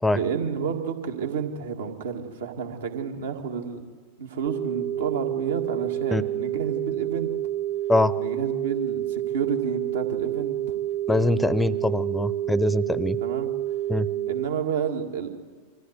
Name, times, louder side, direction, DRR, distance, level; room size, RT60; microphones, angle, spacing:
voice 1, 0.1-3.8 4.2-7.3 8.2-10.8 13.2-13.5 14.3-15.3, right 6 dB, 65° right, 4 dB, 2.0 m, -30 dB
sound 1, 4.5-14.5, right 13 dB, 15° right, 1.0 m, -29 dB
voice 2, 11.1-13.2 13.9-14.1, left 2 dB, 5° left, 18 dB, 0.7 m, -23 dB
24.0 x 14.5 x 8.1 m, 1.5 s
figure-of-eight pair, 90°, 0 cm